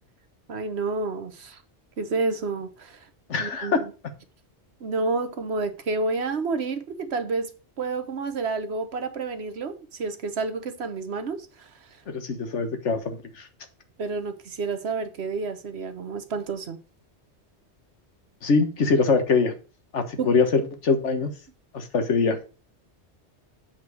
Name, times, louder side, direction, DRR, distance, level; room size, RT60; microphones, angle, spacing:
voice 1, 0.5-1.6 2.0-3.1 3.4-3.9 4.8-7.5 7.8-12.0 14.0-16.8 20.2-20.3, right 3 dB, 65° right, 1.3 m, -30 dB
voice 2, 3.3-3.8 12.1-13.5 18.4-19.5 19.9-21.3 21.7-22.4, left 4 dB, 90° left, 1.7 m, -23 dB
7.9 x 4.5 x 6.3 m
omnidirectional pair, 1.2 m